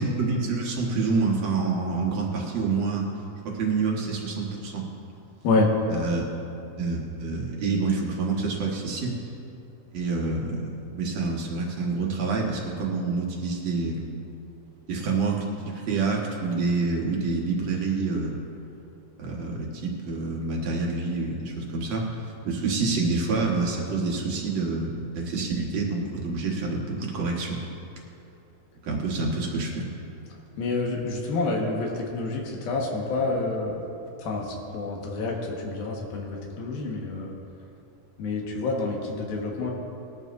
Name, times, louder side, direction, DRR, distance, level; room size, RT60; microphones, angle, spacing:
voice 1, 0.0-3.1 3.5-4.8 5.9-6.2 6.8-9.2 9.9-14.1 14.9-18.4 19.2-22.0 22.4-27.6 28.8-30.1, right 3 dB, 55° right, -2 dB, 2.4 m, -27 dB
voice 2, 30.6-33.7 34.2-37.3 38.2-39.7, left 3 dB, 80° left, -1 dB, 3.4 m, -28 dB
20.5 x 13.0 x 2.6 m, 2.8 s
omnidirectional pair, 4.2 m